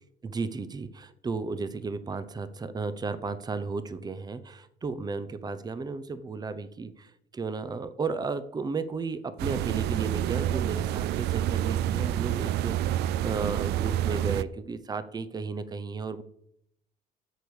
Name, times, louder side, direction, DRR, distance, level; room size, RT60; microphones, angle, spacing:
voice 1, 0.2-16.2, right 4 dB, 25° right, 14 dB, 0.7 m, -34 dB
sound 1, 9.4-14.4, right 12 dB, 75° right, 0.4 m, -28 dB
8.1 x 6.8 x 6.4 m, 0.75 s
cardioid pair, 110°, 17 cm